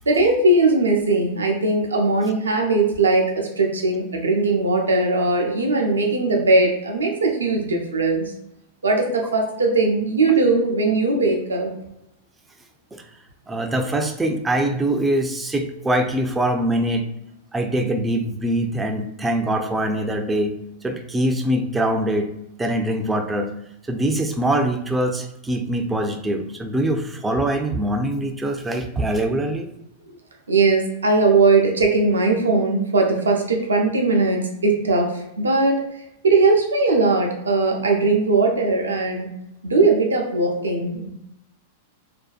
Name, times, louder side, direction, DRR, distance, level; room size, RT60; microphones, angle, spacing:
voice 1, 0.1-8.3 8.8-11.7 30.5-35.8 36.2-39.3 39.6-41.1, right 3 dB, 90° right, 1 dB, 0.5 m, -19 dB
voice 2, 13.5-17.1 17.5-20.6 20.8-22.3 22.6-23.5 23.9-29.7, right 1 dB, 15° right, 5 dB, 0.3 m, -23 dB
2.5 x 2.2 x 2.3 m, 0.81 s
hypercardioid pair, 105°, 0 cm